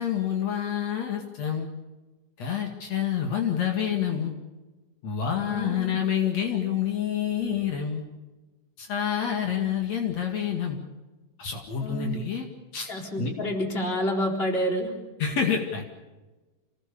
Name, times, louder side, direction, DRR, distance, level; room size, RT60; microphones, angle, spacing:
voice 1, 0.0-1.7 2.4-4.3 5.0-8.0 8.8-10.8 11.4-12.5 12.7-12.9 13.2-13.3 15.2-15.8, left 8 dB, 65° left, 3 dB, 3.3 m, -28 dB
voice 2, 5.5-6.0 11.8-12.2 12.9-14.9, equal, 20° left, 2 dB, 4.0 m, -28 dB
27.0 x 19.0 x 7.0 m, 1.2 s
omnidirectional pair, 3.4 m